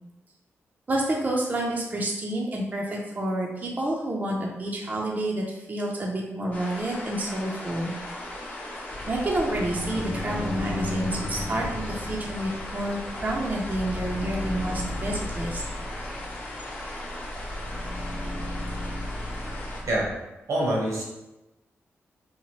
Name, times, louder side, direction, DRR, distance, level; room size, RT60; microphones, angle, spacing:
voice 1, 0.9-7.9 9.1-15.6, right 1 dB, 35° right, -2 dB, 0.5 m, -29 dB
sound 1, 6.5-19.8, left 1 dB, 30° left, 0.8 m, -38 dB
sound 2, 8.9-20.1, left 1 dB, 60° left, 0.6 m, -35 dB
voice 2, 20.5-21.0, right 1 dB, 80° right, -4 dB, 0.9 m, -25 dB
2.8 x 2.0 x 3.0 m, 1.0 s
cardioid pair, 70°, 5 cm